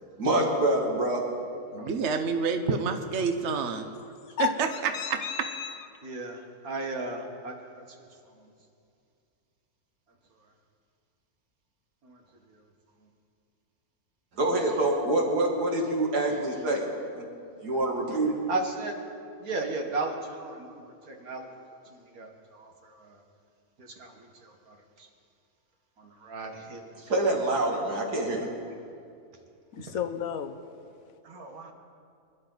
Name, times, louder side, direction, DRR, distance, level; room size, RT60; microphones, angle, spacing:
voice 1, 0.2-1.2 14.4-16.9 17.1-17.3 17.6-18.3 27.0-28.5, right 1 dB, 90° right, 0 dB, 2.7 m, -26 dB
voice 2, 1.7-3.9 4.4-4.9, right 5 dB, 50° right, 6 dB, 1.2 m, -28 dB
voice 3, 4.4-5.8 29.7-30.6, left 8 dB, 65° left, 9 dB, 1.1 m, -32 dB
voice 4, 6.0-6.4 6.6-7.8 12.1-12.2 18.5-18.9 19.4-21.5 22.2-22.7 23.0-23.2 23.8-24.7 26.0-26.9 31.2-31.7, right 2 dB, 65° right, 2 dB, 2.1 m, -35 dB
25.0 x 11.5 x 4.0 m, 2.5 s
omnidirectional pair, 1.7 m